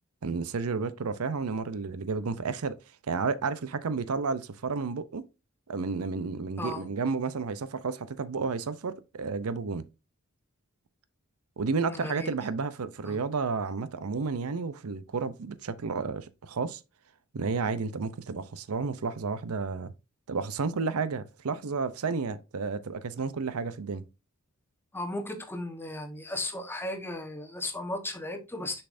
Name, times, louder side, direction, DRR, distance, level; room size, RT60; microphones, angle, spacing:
voice 1, 0.2-2.8 3.1-5.2 5.7-9.9 11.6-16.8 17.3-19.9 20.3-24.0, right 4 dB, 80° right, 0.6 m, -31 dB
voice 2, 11.8-12.3 13.0-13.2 24.9-28.8, left 1 dB, 10° left, 1.2 m, -35 dB
6.8 x 5.6 x 2.6 m
head